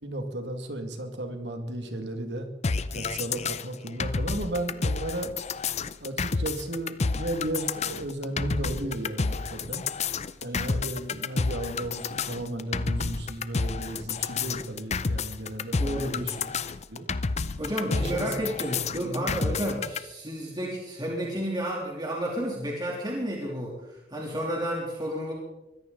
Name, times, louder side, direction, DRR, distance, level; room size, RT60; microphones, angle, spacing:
voice 1, 0.0-2.5 2.9-5.4 6.0-9.9 10.4-16.5 16.9-17.1 17.9-18.3 18.9-19.7, right 1 dB, 85° right, 5 dB, 2.2 m, -34 dB
sound 1, 2.6-20.0, left 4 dB, 40° left, 0.6 m, -30 dB
voice 2, 15.8-16.4 17.6-25.3, equal, 25° right, -3 dB, 3.2 m, -31 dB
23.0 x 14.5 x 4.0 m, 0.97 s
head